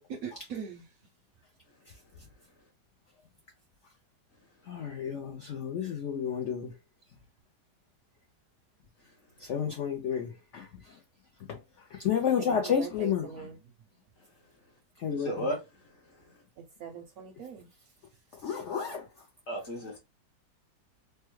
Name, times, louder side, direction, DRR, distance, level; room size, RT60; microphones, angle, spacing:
voice 1, 0.2-0.8 12.4-13.5 16.8-17.6, right 7 dB, 70° right, 0.9 m, -41 dB
voice 2, 4.7-6.7 9.4-10.7 11.5-11.6 11.9-13.5 15.0-15.5 18.4-19.1, left 8 dB, 75° left, 0.6 m, -31 dB
voice 3, 15.1-15.6 19.5-20.0, equal, 45° left, 1.2 m, -33 dB
3.4 x 2.1 x 3.0 m
omnidirectional pair, 1.9 m